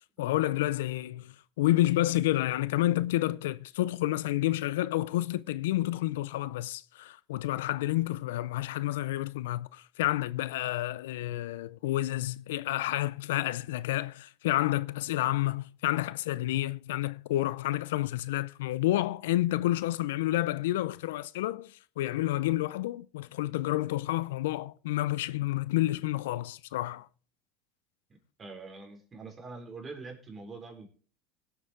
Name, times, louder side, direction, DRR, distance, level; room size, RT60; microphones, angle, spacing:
voice 1, 0.2-27.1, left 16 dB, 80° left, 0.4 m, -29 dB
voice 2, 28.1-30.9, right 3 dB, 30° right, 4.3 m, -44 dB
17.5 x 8.0 x 3.7 m
hypercardioid pair, 85°, 0 cm